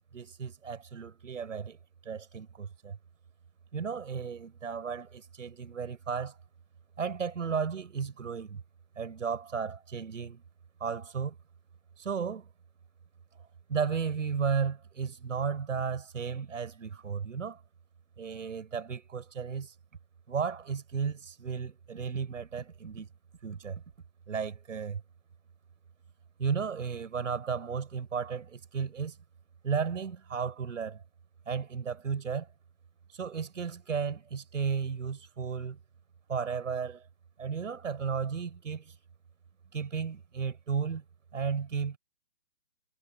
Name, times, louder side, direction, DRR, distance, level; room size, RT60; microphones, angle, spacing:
voice 1, 0.1-1.8 2.0-3.0 3.7-6.4 7.0-8.6 9.0-10.4 10.8-11.3 12.0-12.5 13.7-17.6 18.2-19.7 20.3-23.1 23.4-23.8 24.3-25.0 26.4-29.2 29.6-31.0 31.5-32.5 33.1-35.8 36.3-37.0 37.4-38.9 39.7-41.0 41.3-42.0, right 6 dB, 65° right, 6.6 m, -34 dB
hypercardioid pair, 165°, 41 cm